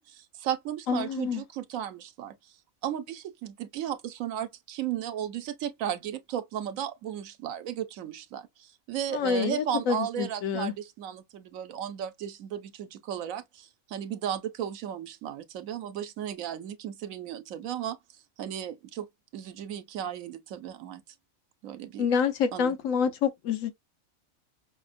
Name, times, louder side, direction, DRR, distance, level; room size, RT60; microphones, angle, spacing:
voice 1, 0.0-2.4 2.8-18.0 18.4-19.1 19.3-21.0 21.6-22.1 22.5-22.8, right 10 dB, 80° right, 1.1 m, -35 dB
voice 2, 0.9-1.4 9.1-10.7 22.0-23.7, left 6 dB, 75° left, 1.2 m, -27 dB
5.3 x 2.1 x 2.5 m
omnidirectional pair, 1.4 m